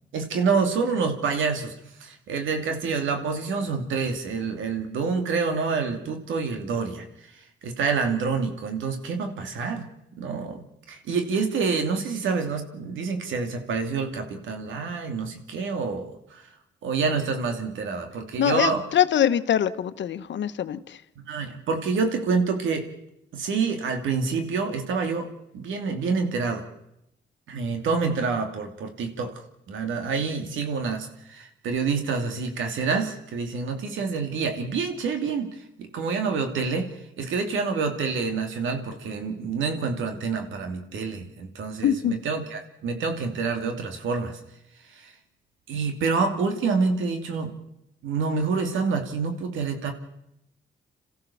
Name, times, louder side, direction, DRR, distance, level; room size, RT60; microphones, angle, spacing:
voice 1, 0.1-1.7 2.0-7.1 7.6-9.9 10.2-16.4 16.8-18.9 21.2-22.9 23.3-25.3 25.5-26.6 27.5-29.4 29.7-44.4 44.9-45.1 45.7-47.5 48.0-49.9, right 4 dB, 85° right, 6 dB, 2.7 m, -27 dB
voice 2, 18.4-20.8 41.8-42.1, left 9 dB, 70° left, 12 dB, 1.1 m, -23 dB
27.5 x 15.0 x 7.1 m, 0.82 s
supercardioid pair, 60°, 20 cm